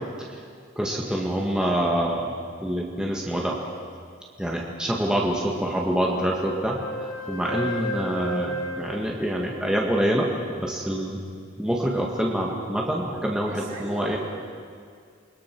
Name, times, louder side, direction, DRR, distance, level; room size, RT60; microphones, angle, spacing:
voice 1, 0.7-2.3 2.6-3.6 4.4-10.3 10.6-11.2 11.6-14.2, equal, 5° right, -2 dB, 1.8 m, -26 dB
Wind instrument woodwind instrument, 5.9-10.1, equal, 75° left, 4.5 m, -34 dB
voice 2, 13.4-14.2, right 1 dB, 35° right, -6 dB, 4.6 m, -37 dB
28.5 x 21.5 x 6.1 m, 2.2 s
head